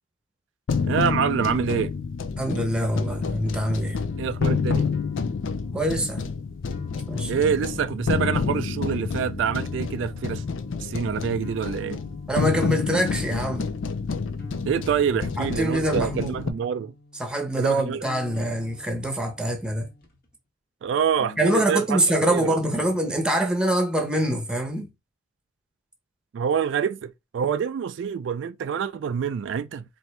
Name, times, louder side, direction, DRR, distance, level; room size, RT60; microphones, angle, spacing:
sound 1, 0.7-16.5, left 5 dB, 80° left, 0.5 m, -29 dB
voice 1, 0.9-1.9 4.2-4.9 7.3-10.4 10.8-12.0 14.6-16.9 17.6-18.0 20.8-22.0 22.3-22.5 26.3-29.8, right 7 dB, 70° right, 0.3 m, -26 dB
voice 2, 2.4-4.0 5.7-6.3 7.1-7.3 12.3-13.7 15.4-16.4 17.2-19.9 21.4-24.9, right 1 dB, 5° right, 0.9 m, -24 dB
sound 2, 4.1-20.3 21.1-23.1, left 3 dB, 50° left, 1.1 m, -46 dB
4.3 x 2.7 x 3.2 m
head